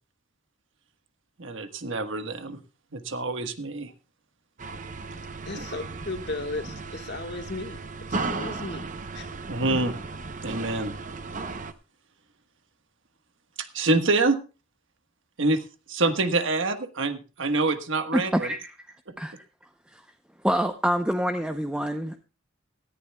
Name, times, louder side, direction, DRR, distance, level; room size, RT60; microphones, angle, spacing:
voice 1, 1.4-2.6 2.9-3.9 5.6-5.7 9.5-9.9 10.4-10.9 13.6-14.4 15.4-18.5, right 3 dB, 75° right, 8 dB, 1.4 m, -26 dB
sound 1, 4.6-11.7, right 3 dB, 40° right, 0.8 m, -35 dB
voice 2, 5.1-7.8 8.1-8.9 9.1-9.3, left 2 dB, 60° left, 6 dB, 1.5 m, -35 dB
voice 3, 18.1-18.7 19.2-19.5 19.9-20.0 20.4-22.3, equal, 5° right, 6 dB, 0.7 m, -26 dB
18.0 x 14.0 x 2.3 m, 0.33 s
head